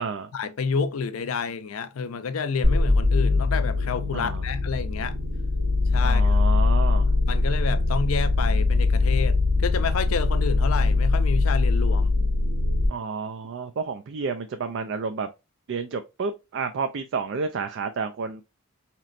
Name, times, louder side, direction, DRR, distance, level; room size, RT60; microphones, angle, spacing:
voice 1, 0.3-5.2 5.9-6.4 7.3-12.1, left 5 dB, 75° left, 0.5 m, -29 dB
sound 1, 2.6-12.9, left 3 dB, 85° right, 1.6 m, -22 dB
voice 2, 4.1-4.5 6.0-7.1 12.9-15.3 15.7-18.4, right 5 dB, 60° right, 0.4 m, -30 dB
4.2 x 2.9 x 2.4 m
head